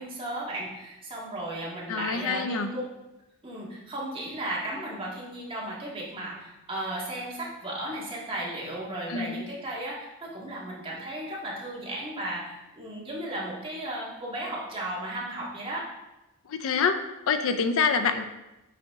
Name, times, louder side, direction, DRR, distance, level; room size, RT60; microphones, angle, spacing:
voice 1, 0.0-2.8 3.4-15.9, right 1 dB, 25° right, -5 dB, 1.7 m, -35 dB
voice 2, 1.9-2.7 9.1-9.4 16.5-17.0 17.3-18.2, left 5 dB, 65° left, 9 dB, 0.5 m, -26 dB
8.3 x 4.1 x 3.6 m, 0.99 s
head